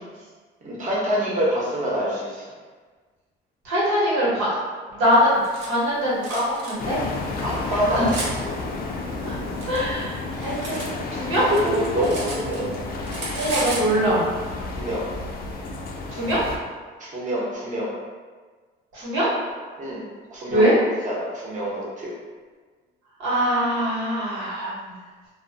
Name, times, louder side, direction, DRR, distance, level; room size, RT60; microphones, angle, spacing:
voice 1, 0.6-2.5 7.4-8.2 11.5-12.7 14.8-15.1 17.0-17.9 19.8-20.0 20.3-20.7 21.0-22.1, equal, 40° right, -5 dB, 0.9 m, -25 dB
voice 2, 3.6-4.6 4.9-7.0 7.7-8.1 9.2-9.4 9.7-11.5 13.4-14.2 16.1-16.4 18.9-19.3 20.5-20.7 23.2-24.9, equal, 85° right, -9 dB, 1.2 m, -23 dB
Cutlery silverware, 5.1-5.7 6.2-6.7 7.4-8.3 9.2-10.9 11.2-12.8 13.0-13.9, right 2 dB, 65° right, 0.6 m, -33 dB
sound 1, 6.8-16.6, left 3 dB, 45° left, 0.4 m, -31 dB
2.2 x 2.2 x 2.5 m, 1.5 s
cardioid pair, 95°, 21 cm